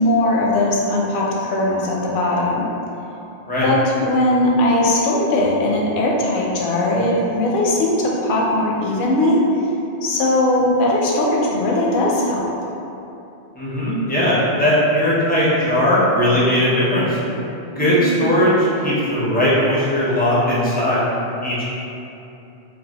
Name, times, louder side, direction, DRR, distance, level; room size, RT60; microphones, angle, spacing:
voice 1, 0.0-2.7 3.6-9.4 10.0-12.5 17.8-18.4, left 1 dB, 60° left, -3 dB, 0.6 m, -19 dB
voice 2, 13.6-17.2 17.8-21.0 21.4-21.6, equal, 15° left, -9 dB, 0.3 m, -18 dB
2.5 x 2.3 x 3.3 m, 2.9 s
omnidirectional pair, 1.1 m